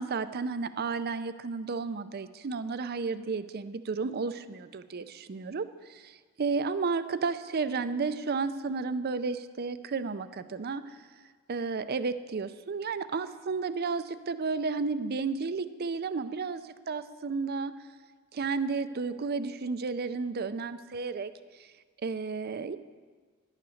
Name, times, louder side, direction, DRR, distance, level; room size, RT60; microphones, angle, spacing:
voice 1, 0.0-11.0 11.5-17.7 18.3-21.3 21.6-21.7 22.0-22.8, right 4 dB, 45° right, 13 dB, 0.5 m, -32 dB
10.5 x 9.7 x 6.3 m, 1.5 s
head